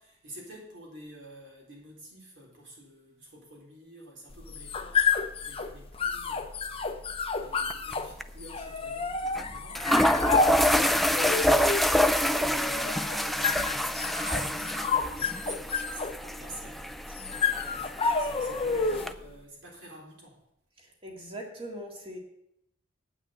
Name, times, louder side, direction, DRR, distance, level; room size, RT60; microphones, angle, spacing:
voice 1, 0.0-20.4, right 1 dB, 65° right, -3 dB, 4.1 m, -47 dB
sound 1, 4.3-19.2, left 4 dB, 30° left, 0.7 m, -30 dB
sound 2, 7.7-7.9 8.2-8.3 9.4-9.5 9.8-19.1, equal, ahead, 0.3 m, -27 dB
voice 2, 20.8-22.2, right 1 dB, 30° right, 0 dB, 2.1 m, -41 dB
9.1 x 6.3 x 8.0 m, 0.78 s
head